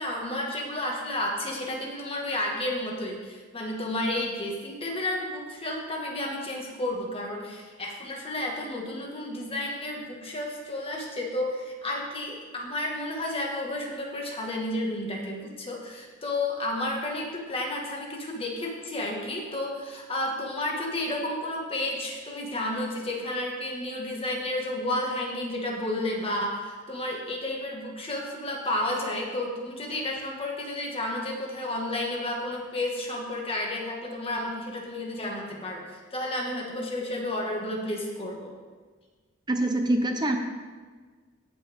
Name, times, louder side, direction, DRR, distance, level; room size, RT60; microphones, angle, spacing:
voice 1, 0.0-38.5, left 1 dB, 30° left, -1 dB, 1.7 m, -31 dB
voice 2, 39.5-40.4, right 1 dB, 20° right, 5 dB, 0.8 m, -24 dB
16.5 x 6.0 x 3.6 m, 1.4 s
head